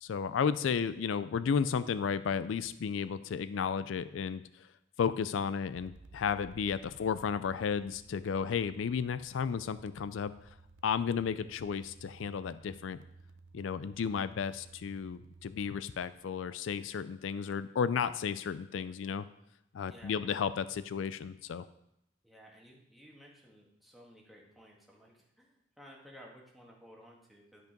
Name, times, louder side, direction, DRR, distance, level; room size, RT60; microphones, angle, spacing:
voice 1, 0.0-4.7 5.0-10.3 10.8-13.0 13.5-19.3 19.7-21.7, left 6 dB, 85° left, 15 dB, 0.4 m, -33 dB
sound 1, 5.7-17.5, right 3 dB, 85° right, 0.6 m, -57 dB
voice 2, 19.8-20.2 22.2-27.7, equal, ahead, -2 dB, 1.7 m, -56 dB
10.5 x 5.4 x 5.2 m, 0.79 s
head